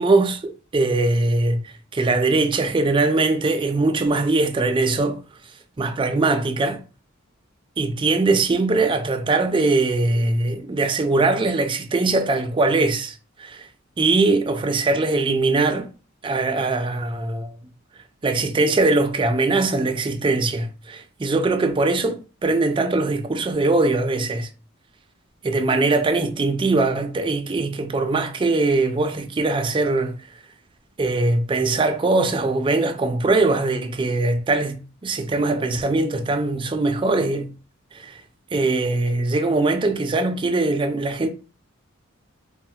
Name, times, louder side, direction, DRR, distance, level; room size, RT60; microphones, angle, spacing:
voice 1, 0.0-5.2 5.8-6.8 7.8-13.7 14.0-15.9 16.2-17.5 18.2-24.5 25.4-30.1 31.0-37.5 37.9-38.2 38.5-41.3, right 3 dB, 25° right, 0.4 m, -21 dB
3.1 x 2.1 x 2.7 m
head